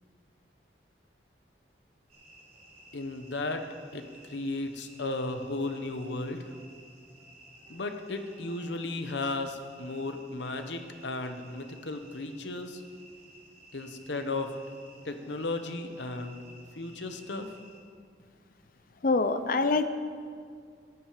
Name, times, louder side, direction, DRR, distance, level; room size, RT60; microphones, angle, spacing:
sound 1, 2.1-17.8, right 1 dB, 40° right, 3.7 m, -55 dB
voice 1, 2.9-3.7 3.9-6.4 7.7-12.8 13.7-14.5 15.0-16.4 16.8-17.5, left 2 dB, 75° left, 7 dB, 1.0 m, -35 dB
voice 2, 19.0-19.9, left 3 dB, 50° left, 10 dB, 0.6 m, -25 dB
15.0 x 10.5 x 5.1 m, 2.1 s
head